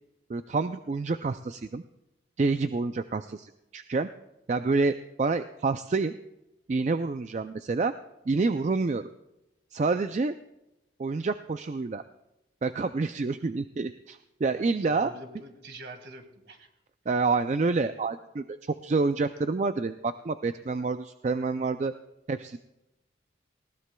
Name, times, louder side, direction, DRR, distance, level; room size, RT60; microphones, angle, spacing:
voice 1, 0.3-1.8 2.4-4.1 4.5-6.1 6.7-7.9 8.3-9.1 9.7-10.3 11.0-12.0 12.6-15.1 17.1-21.9 22.3-22.6, right 3 dB, 40° right, 10 dB, 0.3 m, -28 dB
voice 2, 14.5-16.7, right 2 dB, 60° right, 6 dB, 1.8 m, -46 dB
20.0 x 18.0 x 2.3 m, 0.94 s
head